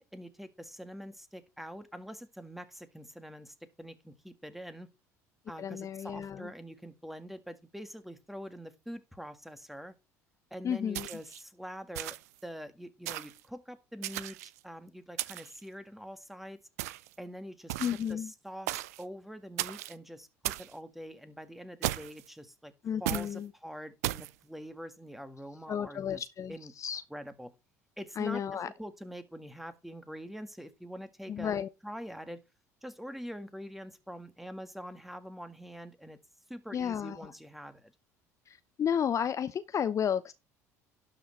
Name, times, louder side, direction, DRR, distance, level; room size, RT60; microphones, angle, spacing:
voice 1, 0.0-4.9 5.5-9.9 10.5-12.2 12.4-16.6 17.2-22.7 23.0-26.2 26.5-26.7 27.1-27.5 28.0-32.4 32.8-36.2 36.5-37.9, equal, ahead, 1.8 m, -45 dB
voice 2, 5.6-6.5 10.6-11.1 17.8-18.3 22.8-23.5 25.7-27.0 28.2-28.7 31.3-31.7 36.7-37.3 38.5-40.3, left 8 dB, 40° left, 0.7 m, -32 dB
sound 1, 10.9-11.4 11.9-12.4 13.1-13.4 14.0-14.6 15.2-15.6 16.8-17.1 17.7-18.1 18.7-19.0 19.6-19.9 20.4-20.7 21.8-22.3 23.1-23.3 24.0-24.3, right 17 dB, 75° right, 0.5 m, -35 dB
12.0 x 5.9 x 4.5 m
hypercardioid pair, 65°, 8 cm